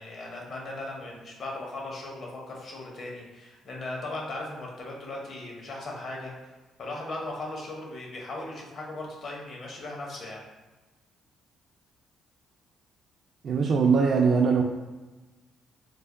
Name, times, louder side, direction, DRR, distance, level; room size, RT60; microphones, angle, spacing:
voice 1, 0.0-6.5 6.8-10.4, left 2 dB, 55° left, -1 dB, 0.9 m, -38 dB
voice 2, 13.4-14.6, right 5 dB, 55° right, 0 dB, 0.3 m, -21 dB
3.3 x 2.2 x 3.6 m, 1.2 s
cardioid pair, 90°, 0 cm